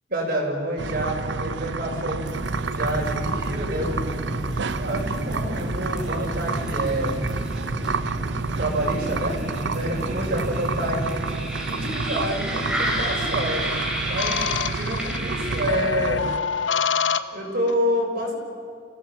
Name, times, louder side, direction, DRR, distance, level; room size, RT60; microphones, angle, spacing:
voice 1, 0.1-2.3 2.7-4.1 4.8-7.2 8.6-11.3 11.7-13.7 14.1-14.4 14.7-16.3 17.3-18.3, right 1 dB, 55° right, -1 dB, 6.2 m, -28 dB
sound 1, 0.8-16.4, right 4 dB, 70° right, 0.7 m, -30 dB
sound 2, 2.2-16.1, equal, 5° right, 4.5 m, -31 dB
sound 3, 12.7-13.2 14.2-15.2 15.7-17.7, left 7 dB, 85° left, 0.9 m, -27 dB
29.5 x 16.5 x 7.5 m, 2.2 s
head